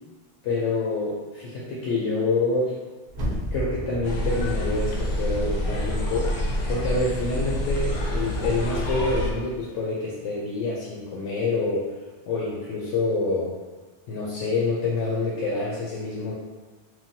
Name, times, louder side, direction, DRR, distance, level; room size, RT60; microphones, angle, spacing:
voice 1, 0.4-2.8 3.5-11.9 12.3-13.6 14.1-16.3, left 3 dB, 90° left, -5 dB, 0.9 m, -27 dB
sound 1, 3.1-6.0 6.4-6.5, equal, 50° right, 0.6 m, -34 dB
sound 2, 4.0-9.3, equal, 65° left, 0.7 m, -27 dB
3.1 x 2.2 x 2.7 m, 1.3 s
omnidirectional pair, 1.2 m